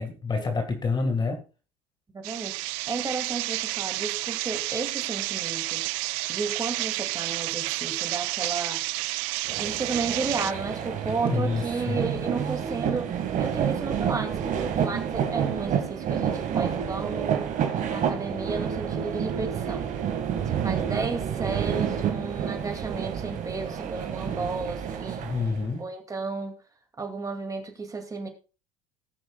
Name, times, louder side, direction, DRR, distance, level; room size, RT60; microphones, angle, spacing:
voice 1, 0.0-1.4 11.3-12.0 25.2-25.9, left 4 dB, 25° left, 6 dB, 1.7 m, -28 dB
voice 2, 2.1-2.6 2.9-5.8 6.3-8.8 9.4-17.5 17.9-19.9 20.5-25.3 25.8-26.5 27.0-28.3, right 4 dB, 20° right, 5 dB, 2.3 m, -33 dB
sound 1, 2.2-10.5, right 22 dB, 75° right, 0.4 m, -30 dB
sound 2, 9.5-25.7, right 8 dB, 50° right, 1.8 m, -29 dB
19.0 x 6.3 x 2.3 m, 0.33 s
supercardioid pair, 95°, 17 cm